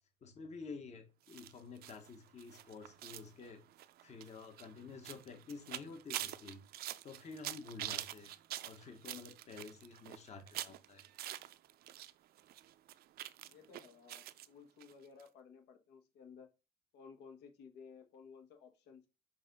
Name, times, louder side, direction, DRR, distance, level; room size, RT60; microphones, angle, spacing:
voice 1, 0.2-3.6 4.0-8.3 8.6-11.0, left 4 dB, 40° left, 1.1 m, -50 dB
sound 1, 1.3-12.1 12.4-14.5 14.8-14.9 15.2-15.3, right 13 dB, 65° right, 0.5 m, -46 dB
voice 2, 13.4-16.5 16.9-19.1, left 6 dB, 80° left, 1.3 m, -56 dB
6.9 x 2.6 x 5.2 m
cardioid pair, 110°, 17 cm